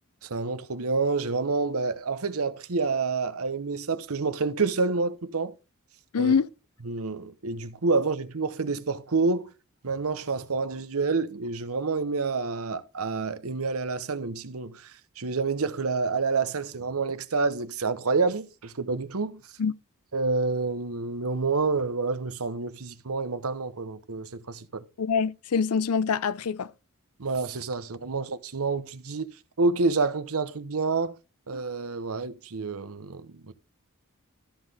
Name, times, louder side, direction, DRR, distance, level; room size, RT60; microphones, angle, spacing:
voice 1, 0.2-5.5 6.2-6.3 6.9-9.5 9.8-14.9 15.2-19.4 20.1-24.8 27.2-29.3 29.6-31.1 31.5-33.5, right 4 dB, 70° right, 0.9 m, -28 dB
voice 2, 6.1-6.5 19.6-19.7 25.0-26.7, left 6 dB, 80° left, 0.5 m, -25 dB
13.0 x 5.8 x 3.5 m
head